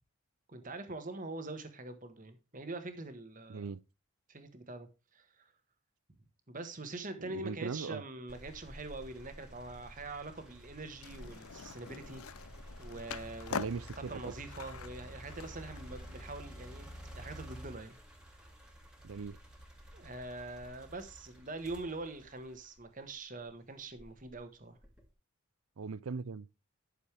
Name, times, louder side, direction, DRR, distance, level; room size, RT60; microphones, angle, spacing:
voice 1, 0.5-3.7 4.3-5.5 6.5-12.2 12.8-18.0 19.9-24.8, right 2 dB, 40° right, 1.5 m, -44 dB
voice 2, 3.5-3.8 7.2-8.0 13.5-14.3 19.0-19.4 25.8-26.5, right 5 dB, 80° right, 0.5 m, -39 dB
sound 1, 8.3-23.3 23.9-25.1, equal, 5° right, 2.1 m, -51 dB
Skateboard, 11.0-16.2, left 6 dB, 90° left, 0.6 m, -45 dB
11.5 x 6.8 x 3.5 m
head